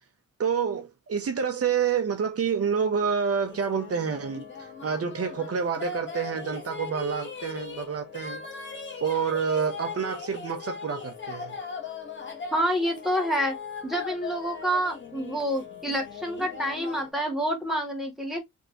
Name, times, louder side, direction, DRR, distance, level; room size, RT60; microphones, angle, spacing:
voice 1, 0.4-8.4 9.0-11.6, right 6 dB, 50° right, 0.8 m, -28 dB
sound 1, 3.4-17.1, left 5 dB, 35° left, 1.1 m, -39 dB
voice 2, 12.5-13.5 13.8-18.4, equal, ahead, 1.8 m, -28 dB
3.8 x 3.6 x 2.9 m
wide cardioid pair, 150°, 31 cm